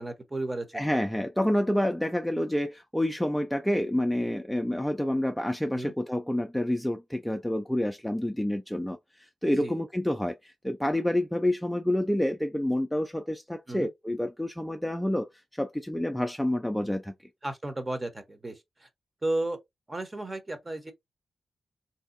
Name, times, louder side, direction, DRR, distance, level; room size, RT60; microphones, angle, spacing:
voice 1, 0.0-0.9 5.7-5.9 9.6-9.7 13.7-13.9 17.4-18.6 19.2-19.6 19.9-20.9, right 2 dB, 25° right, 0.8 m, -33 dB
voice 2, 0.7-17.1, left 1 dB, 5° left, 0.4 m, -28 dB
3.4 x 2.7 x 2.5 m
cardioid pair, 85°, 0 cm